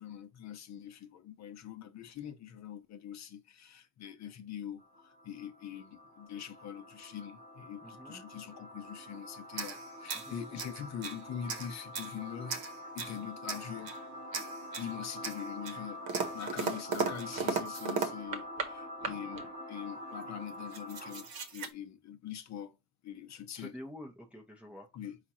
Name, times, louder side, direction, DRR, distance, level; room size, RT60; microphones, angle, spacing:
voice 1, 0.0-12.6 12.9-13.9 14.8-16.1 16.3-22.8 23.0-23.7 24.9-25.2, left 9 dB, 40° left, 0.7 m, -43 dB
sound 1, 4.8-21.5, left 1 dB, 30° right, 1.0 m, -46 dB
voice 2, 7.8-8.2 10.1-10.6 13.0-13.3 23.5-24.9, left 1 dB, 5° right, 0.6 m, -48 dB
sound 2, 9.5-11.2 11.5-12.1 12.5-13.2 13.5-14.0 14.3-14.9 15.2-18.7 19.0-19.5 20.2-20.3 20.5-21.7, right 5 dB, 55° right, 0.9 m, -37 dB
5.0 x 2.4 x 4.2 m
cardioid pair, 155°, 42 cm